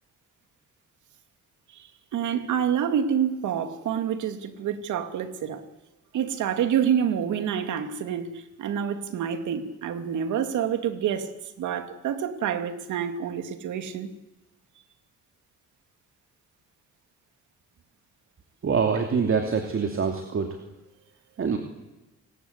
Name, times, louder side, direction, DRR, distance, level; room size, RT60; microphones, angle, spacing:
voice 1, 1.7-5.6 6.1-11.3 11.6-14.1, right 8 dB, 85° right, 7 dB, 2.7 m, -27 dB
voice 2, 18.6-20.6 21.4-21.6, right 5 dB, 45° right, 4 dB, 2.8 m, -25 dB
29.5 x 19.5 x 8.3 m, 1.0 s
cardioid pair, 100°, 29 cm